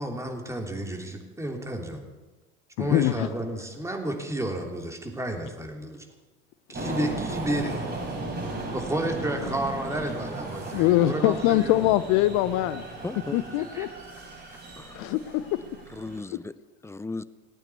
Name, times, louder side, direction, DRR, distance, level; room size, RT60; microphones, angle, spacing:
voice 1, 0.0-2.0 2.8-6.0 6.7-7.9 8.7-11.9 13.7-13.9, right 1 dB, 10° right, 3.1 m, -31 dB
voice 2, 2.8-3.3 9.4-9.5 10.7-12.8 13.3-13.9 14.9-15.6, left 14 dB, 55° left, 1.0 m, -23 dB
sound 1, 6.7-16.2, right 2 dB, 30° right, 6.0 m, -36 dB
voice 3, 13.0-13.4 14.8-15.0 15.9-17.2, left 3 dB, 10° left, 0.5 m, -36 dB
18.0 x 9.1 x 8.3 m
hypercardioid pair, 80°, 34 cm